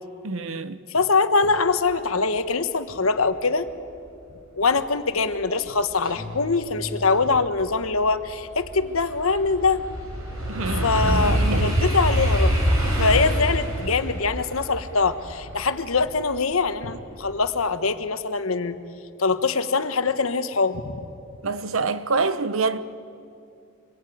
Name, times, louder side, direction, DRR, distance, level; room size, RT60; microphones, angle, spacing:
voice 1, 0.2-0.8 10.5-11.8 21.4-22.8, right 4 dB, 70° right, 1.0 m, -26 dB
voice 2, 0.9-3.7 4.5-9.8 10.8-12.5 12.8-18.8 19.2-20.9, left 4 dB, 85° left, 1.3 m, -23 dB
sound 1, 6.0-7.4, equal, 30° right, 5.7 m, -38 dB
sound 2, 7.0-7.1 7.6-16.7 17.1-17.5, equal, 90° right, 5.9 m, -25 dB
26.0 x 22.0 x 9.4 m
head